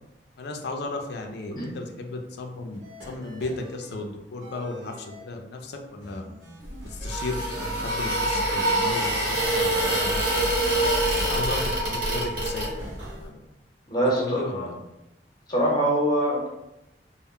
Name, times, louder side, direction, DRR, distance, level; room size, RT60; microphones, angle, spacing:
voice 1, 0.4-6.2 6.8-10.5 11.1-12.9 13.2-13.4 13.9-14.8, left 2 dB, 60° left, 4 dB, 0.4 m, -35 dB
sound 1, 2.7-4.0 4.4-5.2 6.0-7.0 7.3-8.6 9.0-11.8 12.2-13.2, equal, 80° right, 0.9 m, -44 dB
sound 2, 6.6-13.1, right 1 dB, 55° right, 1.0 m, -25 dB
voice 2, 13.9-14.7 15.5-16.5, right 1 dB, 25° left, -4 dB, 0.7 m, -24 dB
2.1 x 2.0 x 3.6 m, 0.92 s
head